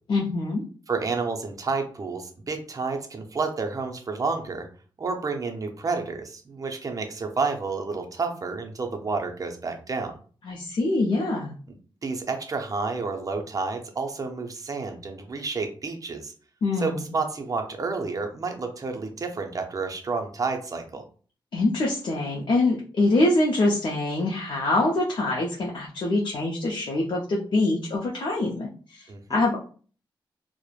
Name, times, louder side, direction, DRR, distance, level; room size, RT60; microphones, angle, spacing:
voice 1, 0.1-0.6 10.4-11.5 16.6-17.1 21.5-29.6, left 2 dB, 60° left, -2 dB, 0.5 m, -24 dB
voice 2, 0.9-4.7 5.0-10.2 12.0-16.3 16.8-21.0 29.1-29.4, right 4 dB, 40° right, 4 dB, 0.5 m, -30 dB
3.0 x 2.0 x 2.3 m, 0.41 s
wide cardioid pair, 110°, 9 cm